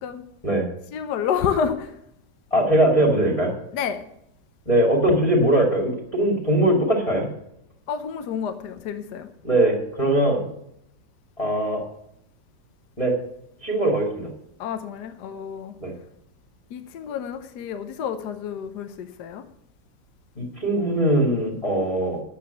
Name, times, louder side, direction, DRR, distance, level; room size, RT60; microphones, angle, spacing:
voice 1, 0.9-1.9 3.7-4.0 7.9-9.3 14.6-15.7 16.7-19.4, left 7 dB, 70° left, 8 dB, 1.3 m, -29 dB
voice 2, 2.5-3.5 4.7-7.3 9.4-10.4 11.4-11.8 13.0-13.1 13.6-14.3 15.8-15.9 20.3-22.2, right 1 dB, 20° left, -2 dB, 2.4 m, -21 dB
10.0 x 7.6 x 7.0 m, 0.75 s
omnidirectional pair, 1.9 m